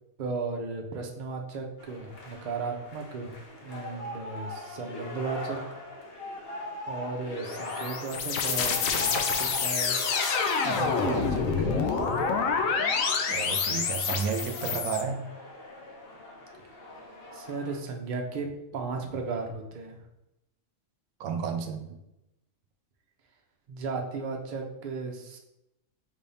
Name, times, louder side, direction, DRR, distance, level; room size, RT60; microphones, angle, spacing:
voice 1, 0.2-3.4 3.6-5.6 6.9-10.0 10.6-11.8 17.3-20.0 23.7-25.4, right 4 dB, 50° right, 2 dB, 0.6 m, -35 dB
sound 1, 1.8-17.8, left 2 dB, 55° left, 0.9 m, -41 dB
sound 2, 7.4-15.0, left 5 dB, 80° left, 1.0 m, -28 dB
voice 2, 13.3-15.2 21.2-22.0, right 6 dB, 90° right, 5 dB, 1.0 m, -32 dB
5.4 x 3.4 x 2.7 m, 0.89 s
omnidirectional pair, 1.4 m